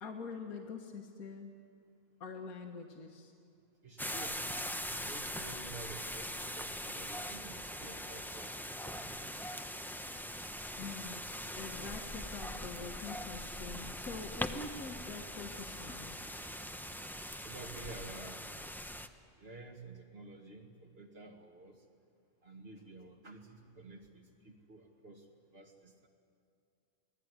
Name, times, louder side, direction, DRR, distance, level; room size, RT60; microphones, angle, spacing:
voice 1, 0.0-1.6 2.2-3.3 10.8-11.3 11.6-16.2, left 4 dB, 75° left, 2 dB, 2.1 m, -45 dB
voice 2, 3.8-4.4 4.9-9.5 17.4-18.4 19.4-21.8 22.4-25.3 25.5-26.1, right 3 dB, 40° right, 3 dB, 2.5 m, -51 dB
sound 1, 4.0-19.1, equal, ahead, 0.6 m, -42 dB
27.0 x 19.5 x 9.8 m, 2.4 s
omnidirectional pair, 1.6 m